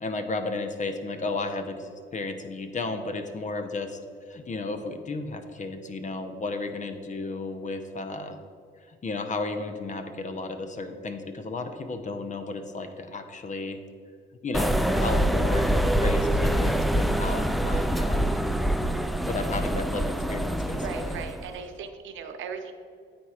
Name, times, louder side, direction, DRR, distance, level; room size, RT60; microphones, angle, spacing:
voice 1, 0.0-4.0 4.3-8.4 8.9-13.8 14.4-18.4 19.3-21.2, left 3 dB, 40° left, 8 dB, 0.8 m, -33 dB
sound 1, 14.5-21.5, right 1 dB, ahead, 0.3 m, -25 dB
voice 2, 20.7-22.7, right 6 dB, 75° right, 6 dB, 0.7 m, -38 dB
9.1 x 4.4 x 4.8 m, 2.2 s
cardioid pair, 90°, 20 cm